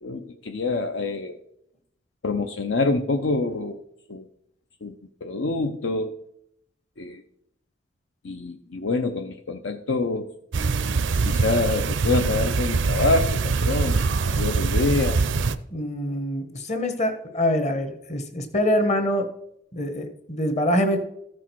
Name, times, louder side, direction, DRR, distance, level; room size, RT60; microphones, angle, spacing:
voice 1, 0.0-1.4 2.2-3.8 4.1-4.2 4.8-4.9 5.2-6.1 7.0-7.2 8.2-10.3 11.2-14.0 14.4-15.2, left 3 dB, 70° left, 6 dB, 0.7 m, -26 dB
sound 1, 10.5-15.6, right 4 dB, 70° right, 0.5 m, -23 dB
voice 2, 15.7-19.3 19.7-21.0, left 1 dB, 35° left, 7 dB, 1.2 m, -24 dB
14.0 x 6.2 x 4.6 m, 0.75 s
head